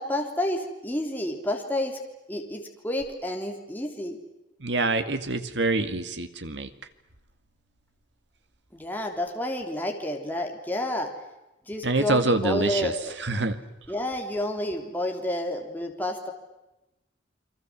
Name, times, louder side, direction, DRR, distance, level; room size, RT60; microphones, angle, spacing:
voice 1, 0.0-2.0 2.3-4.2 8.7-11.1 11.7-13.1 13.9-16.3, left 1 dB, 10° left, 1 dB, 3.4 m, -30 dB
voice 2, 4.6-6.7 11.8-12.9 13.2-13.6, right 2 dB, 70° right, 9 dB, 2.2 m, -25 dB
30.0 x 23.5 x 7.6 m, 0.95 s
head